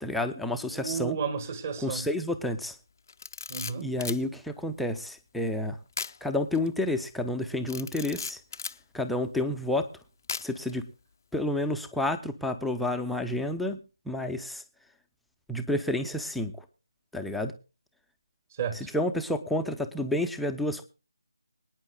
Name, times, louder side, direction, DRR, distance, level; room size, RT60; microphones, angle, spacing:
voice 1, 0.0-1.2 1.8-2.7 3.8-5.8 6.2-8.4 8.9-9.9 10.4-10.8 11.3-13.8 14.1-14.6 15.5-16.5 17.1-17.5 18.9-20.8, left 1 dB, ahead, 4 dB, 0.7 m, -30 dB
voice 2, 0.6-2.1 3.5-3.9 18.6-18.9, right 6 dB, 30° right, 11 dB, 1.7 m, -33 dB
Camera, 3.1-4.2 5.9-6.2 6.5-6.7 7.7-8.8 10.3-10.7, left 5 dB, 40° left, 0.6 m, -37 dB
24.0 x 9.7 x 2.2 m, 0.32 s
figure-of-eight pair, 160°, 3 cm